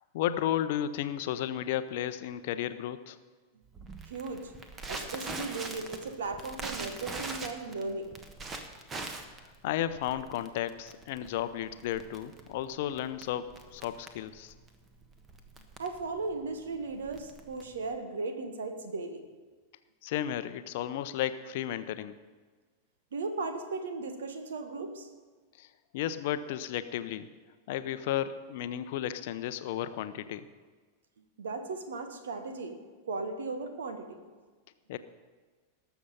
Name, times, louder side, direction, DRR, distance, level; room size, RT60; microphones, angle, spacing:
voice 1, 0.1-3.2 9.6-14.5 20.0-22.1 25.6-25.7 25.9-27.3 27.7-30.5 34.9-35.0, left 11 dB, 50° left, 12 dB, 0.7 m, -33 dB
Crackle, 3.7-17.9, right 3 dB, 20° right, 1.4 m, -43 dB
voice 2, 4.1-4.5 4.9-8.1 15.8-19.2 23.1-25.1 31.4-32.8 33.0-34.2, right 3 dB, 65° right, 7 dB, 1.5 m, -36 dB
19.0 x 7.1 x 5.5 m, 1.4 s
figure-of-eight pair, 90°, 0 cm